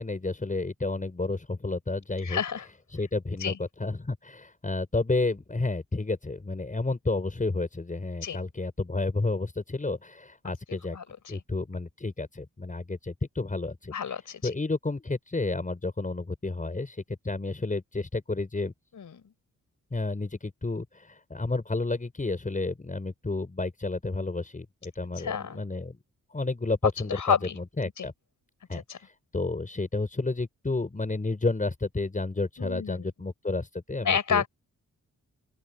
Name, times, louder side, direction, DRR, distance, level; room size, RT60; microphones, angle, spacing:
voice 1, 0.0-2.4 2.9-11.0 11.3-13.9 14.4-18.7 19.9-26.0 26.3-28.1 28.7-28.8 29.3-34.4, left 3 dB, 25° left, 6.3 m, -31 dB
voice 2, 2.2-2.7 3.4-3.6 8.2-8.4 10.9-11.4 13.9-14.4 18.9-19.2 25.2-25.6 27.1-27.6 27.8-28.1 28.7-29.0 32.6-33.1 34.0-34.5, left 7 dB, 70° left, 5.3 m, -30 dB
open air
wide cardioid pair, 120°, 32 cm